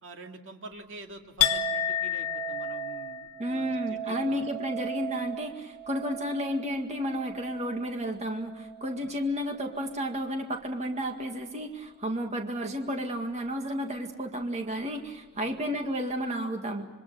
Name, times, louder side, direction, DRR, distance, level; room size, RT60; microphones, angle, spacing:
voice 1, 0.0-4.4 8.9-9.1 15.3-15.5, right 2 dB, 55° right, 3 dB, 2.2 m, -46 dB
Chink clink, 1.4-9.1 9.4-10.1, left 4 dB, 90° left, 1.4 m, -34 dB
voice 2, 3.4-16.9, equal, 30° right, 4 dB, 1.9 m, -32 dB
26.0 x 24.5 x 6.9 m, 1.2 s
head